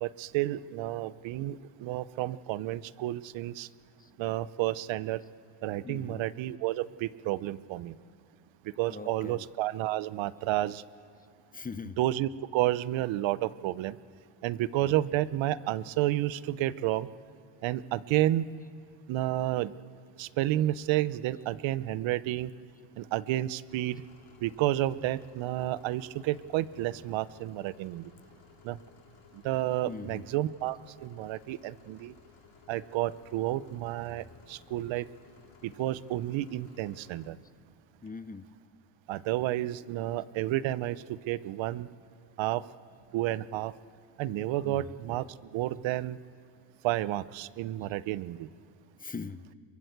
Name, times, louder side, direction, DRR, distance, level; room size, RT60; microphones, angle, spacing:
voice 1, 0.0-3.7 4.2-5.2 5.6-8.0 8.8-10.8 12.0-14.0 14.4-17.1 17.6-18.5 19.1-19.7 20.2-22.5 23.0-24.0 24.4-28.1 28.6-28.8 29.4-32.1 32.7-35.1 35.6-37.4 39.1-41.9 42.4-42.6 43.1-43.7 44.2-45.2 45.5-46.2 46.8-48.5, right 15 dB, 65° right, 17 dB, 0.9 m, -31 dB
voice 2, 5.8-6.3 8.9-9.5 11.5-12.0 14.8-15.0 23.1-23.2 29.9-30.2 38.0-38.4 44.6-45.0 49.0-49.4, left 4 dB, 15° left, 13 dB, 0.9 m, -41 dB
sound 1, 23.7-37.3, left 7 dB, 65° left, 3.2 m, -58 dB
23.0 x 21.5 x 8.1 m, 2.5 s
supercardioid pair, 95°, 49 cm